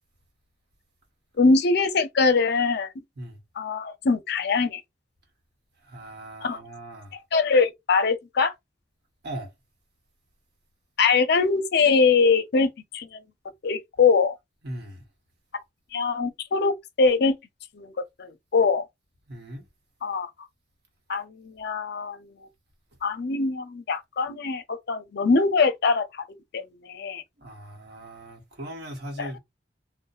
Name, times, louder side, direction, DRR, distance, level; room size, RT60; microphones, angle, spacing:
voice 1, 1.4-2.9 3.6-4.8 6.4-6.6 7.3-8.5 11.0-13.2 13.6-14.4 15.9-17.4 17.7-17.9 18.2-18.8 20.0-20.3 21.1-22.2 23.0-26.3 26.5-27.2 29.2-29.3, left 4 dB, 60° left, 0.5 m, -23 dB
voice 2, 5.8-7.1 9.2-9.5 14.6-15.0 19.3-19.6 27.4-29.4, right 1 dB, 60° right, 1.0 m, -39 dB
2.7 x 2.1 x 2.3 m
head